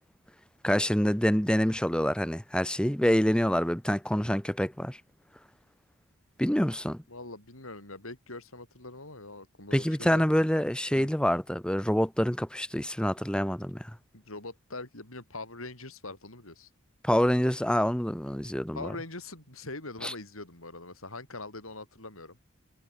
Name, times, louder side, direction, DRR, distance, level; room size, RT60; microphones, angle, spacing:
voice 1, 0.6-5.0 6.4-7.0 9.7-13.9 17.0-18.9 20.0-20.1, equal, 5° left, 1.4 m, -26 dB
voice 2, 7.1-10.4 10.9-11.1 14.1-16.7 18.7-22.4, left 2 dB, 80° left, 7.6 m, -42 dB
head